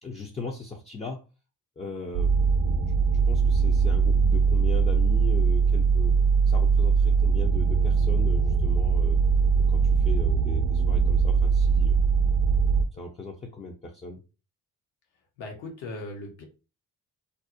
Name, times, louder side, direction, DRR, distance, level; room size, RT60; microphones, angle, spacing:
voice 1, 0.0-1.2 1.8-2.3 2.6-3.0 3.3-6.1 6.5-9.2 9.6-12.0 12.9-14.2, left 3 dB, 15° left, 1 dB, 0.3 m, -38 dB
sound 1, 2.1-12.8, right 5 dB, 60° right, 0.6 m, -21 dB
voice 2, 15.4-16.4, left 2 dB, 75° left, 2 dB, 0.9 m, -38 dB
2.5 x 2.0 x 2.5 m, 0.31 s
hypercardioid pair, 40°, 47 cm